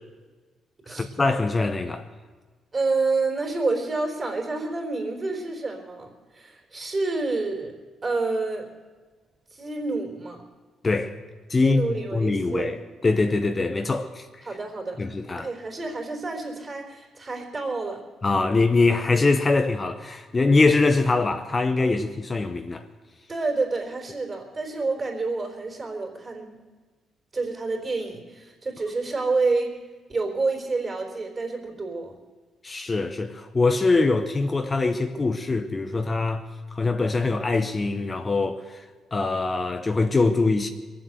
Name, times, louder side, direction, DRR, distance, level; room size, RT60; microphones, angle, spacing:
voice 1, 0.9-2.0 10.8-11.1 11.5-12.8 13.0-14.5 15.0-15.5 18.2-22.8 32.6-36.5 36.7-38.8 39.1-40.7, left 3 dB, 30° left, 0.9 m, -23 dB
voice 2, 2.7-7.7 8.0-8.7 9.5-10.4 11.6-12.8 14.4-15.0 15.4-18.0 23.3-26.6 27.3-29.8 30.1-32.1, right 3 dB, 30° right, 3.9 m, -28 dB
22.5 x 7.7 x 8.0 m
cardioid pair, 90°, 0 cm